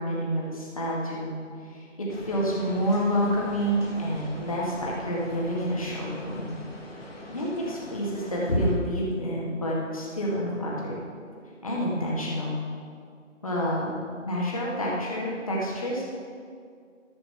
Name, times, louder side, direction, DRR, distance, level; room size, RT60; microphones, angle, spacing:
voice 1, 0.0-1.4 1.7-1.8 2.3-6.5 7.3-11.0 11.6-12.6 13.4-13.9 14.2-16.0, equal, 25° left, -5 dB, 1.8 m, -28 dB
sound 1, 2.1-8.8, left 1 dB, 50° left, 1.8 m, -43 dB
13.5 x 5.7 x 5.7 m, 2.2 s
figure-of-eight pair, 170°, 38 cm